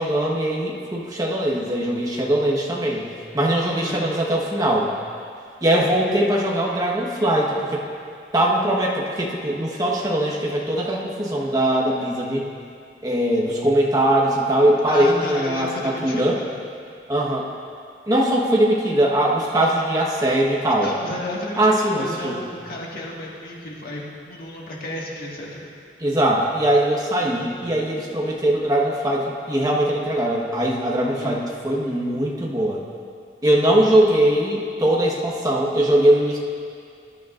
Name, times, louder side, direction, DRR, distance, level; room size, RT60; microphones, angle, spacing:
voice 1, 0.0-3.0 3.3-4.9 5.6-7.8 8.3-12.4 13.0-16.4 17.1-17.5 18.1-20.9 21.6-22.3 26.0-32.8 33.4-36.4, right 1 dB, 20° right, -3 dB, 1.3 m, -21 dB
voice 2, 3.7-4.0 14.9-16.5 20.7-25.7 31.0-31.4 33.4-33.8, left 1 dB, 55° left, -3 dB, 1.8 m, -33 dB
19.5 x 10.5 x 2.6 m, 2.3 s
head